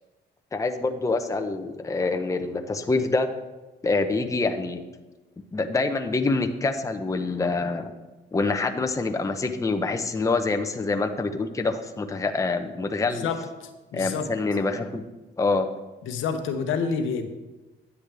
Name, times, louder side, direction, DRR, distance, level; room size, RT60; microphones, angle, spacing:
voice 1, 0.5-3.3 3.8-4.8 5.5-7.9 8.3-13.3 13.9-15.0 15.4-15.7, left 3 dB, 15° left, 6 dB, 0.6 m, -26 dB
voice 2, 13.0-14.3 16.0-17.3, left 5 dB, 85° left, 6 dB, 0.9 m, -29 dB
9.9 x 8.0 x 3.4 m, 1.1 s
cardioid pair, 90°, 20 cm